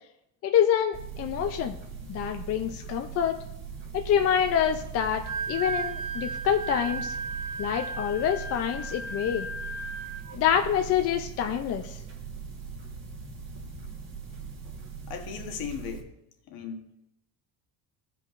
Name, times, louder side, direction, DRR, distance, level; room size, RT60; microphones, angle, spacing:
voice 1, 0.4-1.8 2.1-3.4 3.9-7.1 7.6-9.5 10.3-12.0, left 9 dB, 40° left, 5 dB, 0.5 m, -26 dB
sound 1, 0.9-16.0, right 6 dB, 30° right, 1.4 m, -40 dB
Wind instrument woodwind instrument, 5.1-10.4, right 3 dB, 80° right, 1.1 m, -35 dB
voice 2, 15.1-16.1 16.5-16.8, left 7 dB, 65° left, 4 dB, 1.3 m, -36 dB
15.0 x 5.3 x 2.5 m, 0.82 s
cardioid pair, 130°, 39 cm